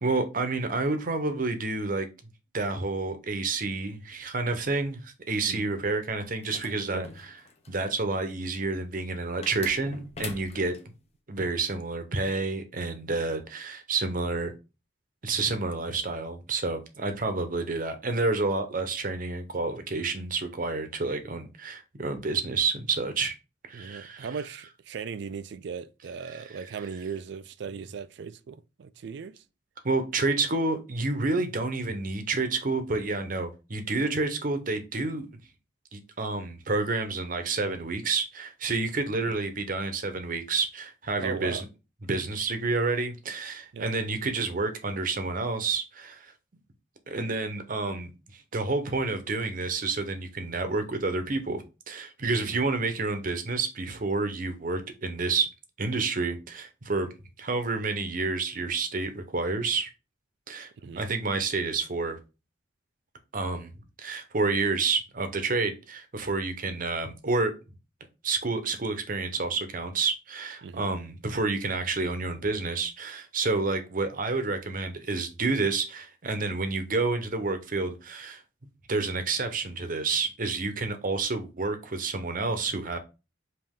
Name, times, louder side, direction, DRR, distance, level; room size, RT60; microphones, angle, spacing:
voice 1, 0.0-2.1 2.5-7.0 7.7-10.7 11.3-14.5 15.2-23.3 23.7-24.3 26.3-26.4 29.8-35.3 35.9-41.7 42.0-46.3 47.1-48.1 48.5-55.5 55.8-57.1 57.4-59.9 60.5-60.7 61.0-62.2 63.3-63.7 64.0-67.5 68.2-78.4 78.9-83.0, right 3 dB, 45° right, 0.8 m, -29 dB
sound 1, 6.4-7.8 9.4-10.8, left 4 dB, 30° left, 0.7 m, -42 dB
voice 2, 23.7-29.4 39.3-39.4 41.2-41.7 43.7-43.9 52.4-52.6 60.8-61.1 70.6-70.9, right 6 dB, 60° right, 0.4 m, -38 dB
5.3 x 2.7 x 3.6 m
head